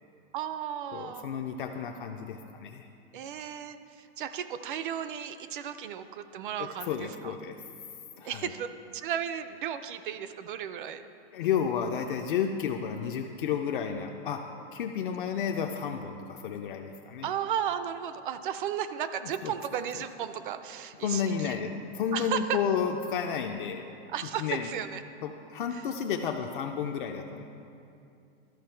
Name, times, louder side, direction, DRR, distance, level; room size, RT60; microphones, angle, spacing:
voice 1, 0.3-1.3 3.1-7.3 8.2-11.1 17.2-21.6 22.1-22.6 24.1-25.0 25.7-25.8, right 9 dB, 50° right, 11 dB, 0.4 m, -34 dB
voice 2, 0.9-2.9 6.6-7.6 8.2-8.5 11.3-14.4 14.7-17.3 19.4-19.5 21.0-23.9 24.4-24.7 25.2-27.4, left 7 dB, 50° left, 4 dB, 0.5 m, -32 dB
13.0 x 5.6 x 4.4 m, 2.6 s
supercardioid pair, 175°, 33 cm